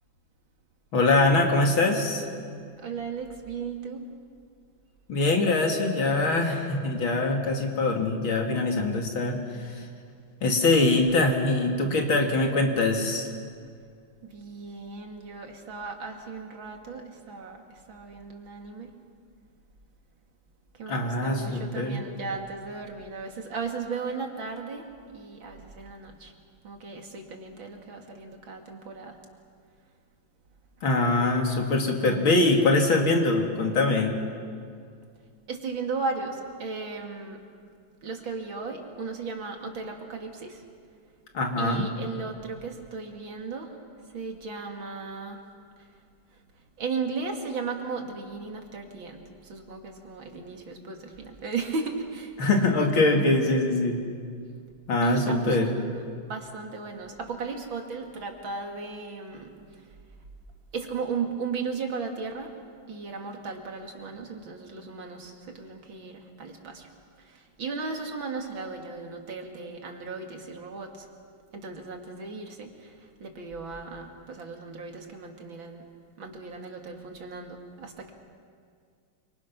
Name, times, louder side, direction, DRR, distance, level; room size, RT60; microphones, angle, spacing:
voice 1, 0.9-2.2 5.1-9.8 10.4-13.3 20.9-22.0 30.8-34.1 41.3-41.9 52.4-54.0 54.9-55.7, left 2 dB, 80° left, 2 dB, 3.4 m, -23 dB
voice 2, 2.8-4.0 14.2-18.9 20.8-26.3 26.6-29.2 35.5-37.4 38.0-40.6 41.6-43.7 44.1-45.4 46.8-52.3 55.0-56.0 56.3-59.5 60.7-62.5 62.9-66.9 67.3-71.1 71.5-72.9 73.2-75.9 76.2-78.1, right 4 dB, 75° right, 3 dB, 3.1 m, -36 dB
28.0 x 25.5 x 6.2 m, 2.2 s
omnidirectional pair, 2.2 m